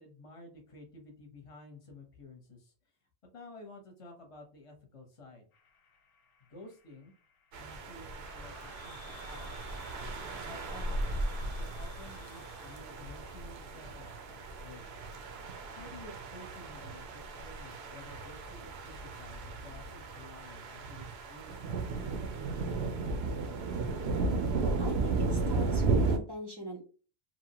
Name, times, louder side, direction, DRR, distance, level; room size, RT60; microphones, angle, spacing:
voice 1, 0.0-2.7 3.3-5.5 6.5-7.1 7.6-9.7 10.4-11.0 11.5-14.8 15.7-22.4, left 2 dB, 35° left, 3 dB, 0.8 m, -52 dB
sound 1, 5.5-12.8, left 6 dB, 65° left, 0.7 m, -55 dB
sound 2, 7.5-26.2, right 3 dB, 75° right, 0.8 m, -35 dB
voice 2, 24.8-26.8, equal, 30° right, 1 dB, 0.5 m, -43 dB
2.9 x 2.0 x 2.7 m, 0.37 s
omnidirectional pair, 1.1 m